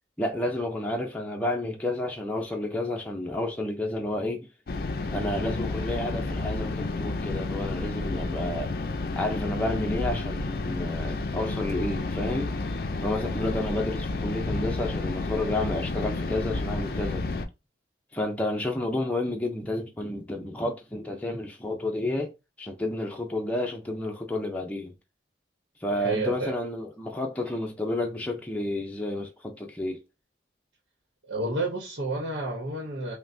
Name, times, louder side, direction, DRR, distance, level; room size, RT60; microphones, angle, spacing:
voice 1, 0.2-4.5 5.1-8.7 9.1-12.5 13.0-17.3 18.1-22.3 22.6-24.9 25.8-30.0, left 1 dB, 10° left, 0.6 m, -30 dB
sound 1, 4.7-17.5, left 2 dB, 55° left, 0.4 m, -31 dB
voice 2, 25.9-26.5 31.2-33.2, right 2 dB, 80° right, 1.0 m, -30 dB
5.5 x 2.1 x 2.7 m
head